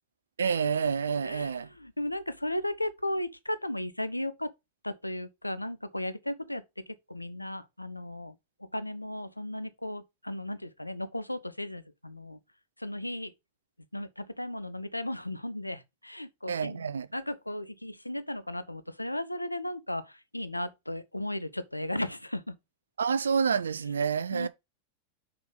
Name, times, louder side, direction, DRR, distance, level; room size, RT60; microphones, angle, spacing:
voice 1, 0.4-1.7 16.5-17.1 23.0-24.5, right 6 dB, 70° right, 0.5 m, -28 dB
voice 2, 1.2-4.5 4.8-8.3 8.6-12.4 12.8-13.3 13.9-16.9 17.1-22.6 24.3-24.5, left 1 dB, 85° left, 0.7 m, -35 dB
5.9 x 5.1 x 5.3 m
figure-of-eight pair, 90°, 0 cm